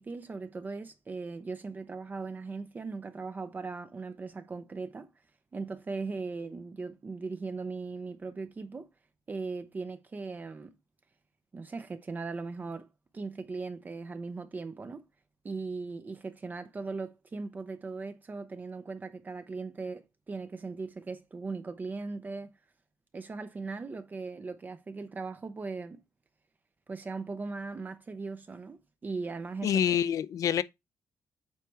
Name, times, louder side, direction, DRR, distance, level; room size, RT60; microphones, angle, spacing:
voice 1, 0.0-5.1 5.5-8.9 9.3-10.8 11.5-12.9 13.1-15.0 15.4-22.5 23.1-26.0 26.9-30.0, right 4 dB, 30° right, 0.7 m, -39 dB
voice 2, 29.6-30.6, left 9 dB, 70° left, 0.5 m, -26 dB
8.4 x 3.3 x 4.5 m
cardioid pair, 125°, 6 cm